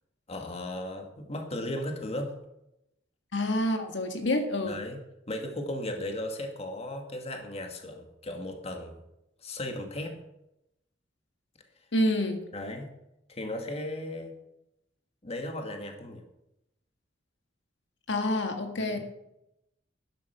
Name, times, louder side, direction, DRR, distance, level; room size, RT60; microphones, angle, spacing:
voice 1, 0.3-2.4 4.7-5.0 5.3-9.0 9.4-10.2 12.5-12.9 13.3-14.4 15.2-16.2 18.8-19.0, left 1 dB, 35° left, 4 dB, 2.0 m, -36 dB
voice 2, 3.3-4.8 11.9-12.4 18.1-19.0, left 1 dB, 70° left, 4 dB, 1.7 m, -27 dB
12.0 x 10.5 x 5.9 m, 0.85 s
head